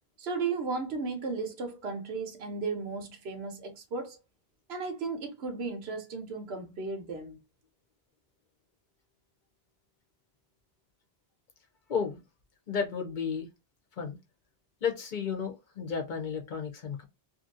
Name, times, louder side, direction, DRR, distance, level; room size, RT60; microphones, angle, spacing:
voice 1, 0.2-4.2 4.7-7.4, right 4 dB, 85° right, 1.1 m, -35 dB
voice 2, 11.9-12.2 12.7-13.5 14.0-14.2 14.8-17.0, left 6 dB, 55° left, 0.8 m, -32 dB
2.7 x 2.6 x 2.6 m
omnidirectional pair, 1.0 m